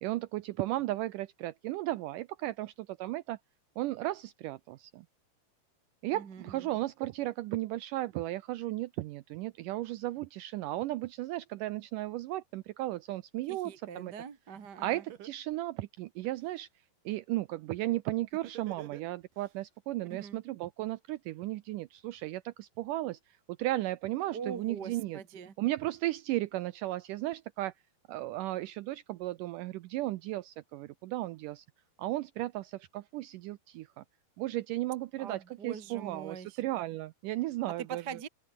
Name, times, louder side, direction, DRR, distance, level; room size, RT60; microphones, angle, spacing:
voice 1, 0.0-3.4 3.8-5.0 6.0-14.1 14.8-16.7 17.0-25.2 25.6-27.7 28.1-31.6 32.0-34.0 34.4-38.2, right 16 dB, 85° right, 1.8 m, -35 dB
voice 2, 6.1-6.6 13.5-15.0 20.1-20.4 24.3-25.5 35.2-36.6 37.9-38.3, right 7 dB, 40° right, 1.5 m, -43 dB
Laughter, 14.6-14.7 15.1-16.6 18.3-19.5, right 10 dB, 60° right, 3.1 m, -48 dB
open air
omnidirectional pair, 4.6 m